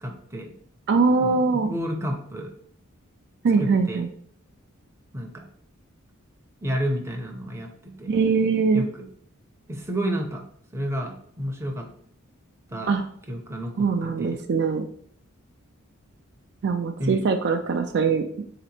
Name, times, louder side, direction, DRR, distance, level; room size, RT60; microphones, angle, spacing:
voice 1, 0.0-0.5 1.2-2.5 3.6-4.0 5.1-5.4 6.6-8.1 8.7-9.1 9.7-10.4 10.7-11.9 12.7-13.0 13.3-13.9 14.2-14.4 17.0-17.2, equal, 15° right, 1 dB, 0.6 m, -30 dB
voice 2, 0.9-1.7 3.4-4.1 8.1-8.8 12.9-13.0 13.8-14.9 16.6-18.2, right 4 dB, 50° right, 5 dB, 0.4 m, -22 dB
4.1 x 2.9 x 4.2 m, 0.62 s
head